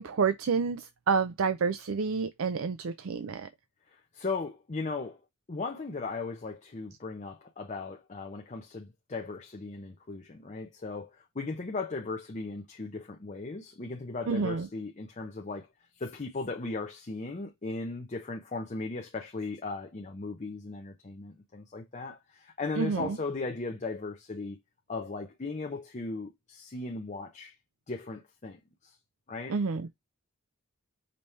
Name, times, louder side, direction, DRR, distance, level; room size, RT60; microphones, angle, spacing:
voice 1, 0.0-3.5 14.3-14.7 22.8-23.2 29.5-29.9, right 5 dB, 65° right, 0.4 m, -29 dB
voice 2, 3.9-5.2 5.5-15.7 16.0-24.6 24.9-27.5 27.9-28.9 29.3-29.6, left 3 dB, 35° left, 0.6 m, -37 dB
5.2 x 2.8 x 3.1 m
head